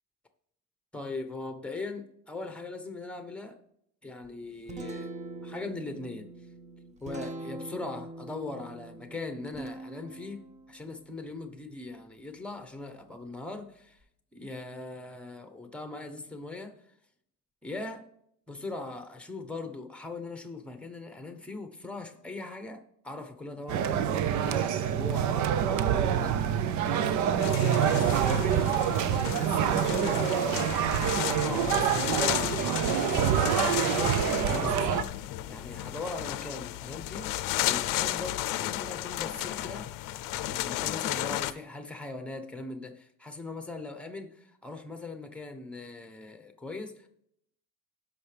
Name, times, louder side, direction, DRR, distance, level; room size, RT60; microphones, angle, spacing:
voice 1, 0.9-3.6 4.0-5.1 5.4-6.3 7.0-14.0 14.3-16.8 17.6-18.1 18.5-30.6 31.4-39.9 40.4-47.1, left 2 dB, 5° left, 1.0 m, -40 dB
Guitar, 4.2-14.0, right 2 dB, 20° right, 0.7 m, -45 dB
sound 1, 23.7-35.0, right 9 dB, 60° right, 0.6 m, -26 dB
sound 2, 27.4-41.5, left 15 dB, 75° left, 0.6 m, -33 dB
17.0 x 5.9 x 3.4 m
cardioid pair, 140°, 34 cm